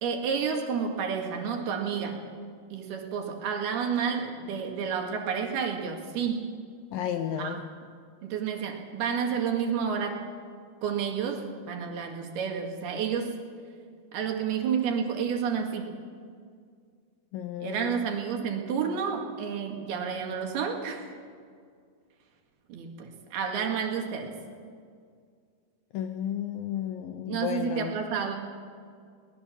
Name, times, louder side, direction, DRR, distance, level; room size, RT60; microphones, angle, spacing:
voice 1, 0.0-2.2 2.7-6.5 7.4-7.6 8.2-10.2 10.8-13.4 14.1-15.9 17.6-21.1 22.7-24.3 27.3-28.4, right 6 dB, 70° right, 3 dB, 3.8 m, -30 dB
voice 2, 6.9-7.6 17.3-18.0 25.9-28.0, left 10 dB, 75° left, 8 dB, 2.2 m, -33 dB
23.0 x 19.0 x 7.2 m, 2.1 s
omnidirectional pair, 4.9 m